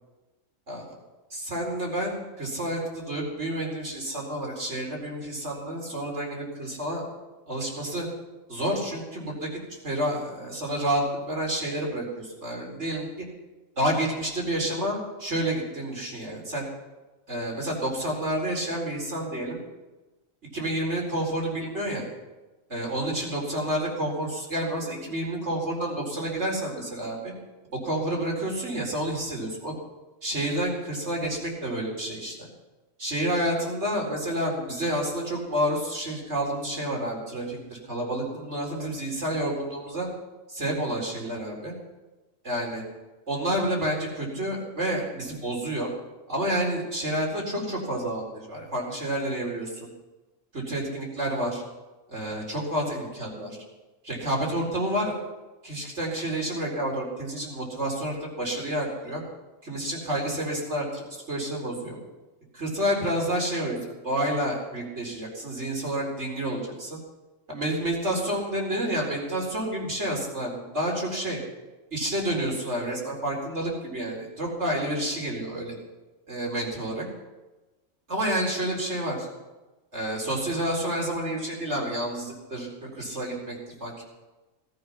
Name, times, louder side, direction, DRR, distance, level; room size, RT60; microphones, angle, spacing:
voice 1, 1.3-7.1 7.5-8.1 8.5-9.5 9.8-13.3 13.8-16.7 17.3-19.6 20.5-22.1 22.7-27.3 27.8-29.7 30.2-32.5 33.0-40.1 40.5-41.7 42.4-42.8 43.3-45.9 46.3-49.9 50.5-51.6 52.1-53.6 54.0-55.2 55.6-59.2 59.6-62.0 62.5-67.0 67.5-71.4 71.9-75.7 76.3-77.0 78.1-79.3 79.9-84.0, right 1 dB, 55° right, -1 dB, 4.5 m, -29 dB
18.0 x 13.5 x 5.8 m, 1.1 s
omnidirectional pair, 1.4 m